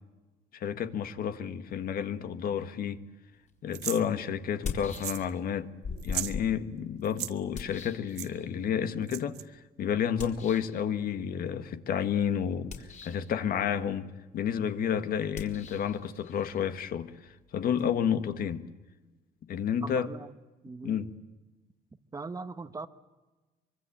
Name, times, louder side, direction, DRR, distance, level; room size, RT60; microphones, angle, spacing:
voice 1, 0.5-3.0 3.6-5.7 6.0-18.7 19.5-20.1 20.8-21.1, left 8 dB, 60° left, 1.8 m, -31 dB
sound 1, 3.5-3.6 4.4-5.5 5.8-8.7 10.2-10.8 12.6-13.3 15.3-17.9, left 5 dB, 45° left, 4.3 m, -41 dB
sound 2, 3.7-4.0 4.9-5.3 5.5-5.6 6.0-6.3 7.0-7.3 8.2-8.3 9.1-9.4, right 15 dB, 80° right, 1.2 m, -35 dB
voice 2, 19.8-20.3 20.6-21.0 22.1-22.9, right 3 dB, 20° right, 1.2 m, -40 dB
24.5 x 24.0 x 8.8 m
cardioid pair, 110°, 17 cm